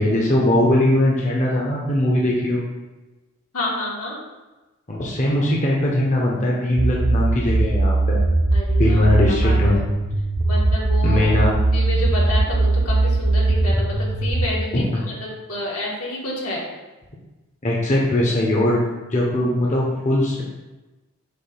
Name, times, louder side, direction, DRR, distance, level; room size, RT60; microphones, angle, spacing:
voice 1, 0.0-2.6 4.9-8.2 8.8-9.8 11.0-11.6 14.7-14.8 17.6-18.8 19.1-20.4, left 1 dB, 35° left, -3 dB, 0.8 m, -20 dB
voice 2, 3.5-4.2 8.5-9.8 10.4-11.2 11.7-16.6, left 1 dB, 80° left, -5 dB, 1.9 m, -29 dB
sound 1, 6.8-14.5, right 2 dB, 20° right, 0.6 m, -19 dB
6.9 x 2.6 x 5.5 m, 1.1 s
head